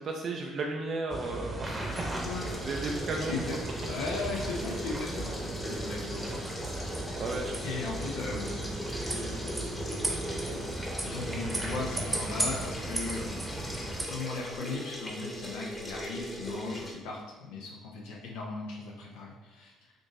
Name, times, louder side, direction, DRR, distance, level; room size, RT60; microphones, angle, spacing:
voice 1, 0.0-2.1 2.6-3.6 7.2-7.5, right 3 dB, 55° right, 1 dB, 0.4 m, -34 dB
sound 1, 1.1-14.0, right 2 dB, 20° right, 0.8 m, -36 dB
sound 2, 1.9-16.9, equal, 20° left, 1.1 m, -39 dB
voice 2, 2.2-2.5 3.3-3.6 3.8-6.4 7.6-8.8 9.1-9.5 10.4-10.7 11.0-13.4 13.8-19.9, left 3 dB, 75° left, -2 dB, 0.5 m, -38 dB
3.7 x 2.6 x 3.6 m, 1.3 s
hypercardioid pair, 60°, 0 cm